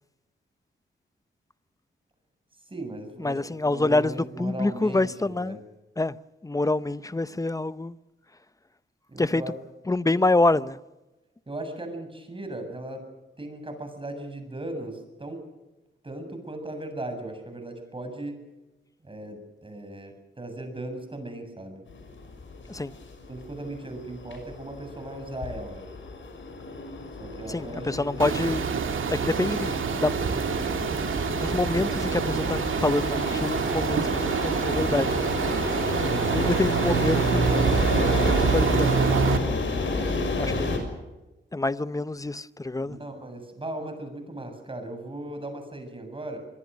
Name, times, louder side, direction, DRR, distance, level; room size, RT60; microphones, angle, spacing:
voice 1, 2.6-5.6 9.1-9.5 11.5-13.1 13.4-15.5 16.0-18.4 19.0-21.8 23.3-25.8 27.2-28.2 35.9-36.3 39.9-40.2 42.9-46.4, right 1 dB, 25° right, 7.6 m, -37 dB
voice 2, 3.2-5.6 6.0-6.2 6.4-8.0 9.2-9.4 9.9-10.8 22.7-22.9 27.5-28.6 29.1-30.2 31.3-35.3 36.3-37.5 38.2-39.0 40.3-40.7 41.5-43.0, left 2 dB, 15° left, 0.8 m, -26 dB
sound 1, 21.9-40.8, left 3 dB, 75° left, 6.0 m, -32 dB
sound 2, 28.2-39.4, right 6 dB, 85° right, 2.3 m, -26 dB
25.5 x 22.0 x 6.4 m
wide cardioid pair, 90°, 20 cm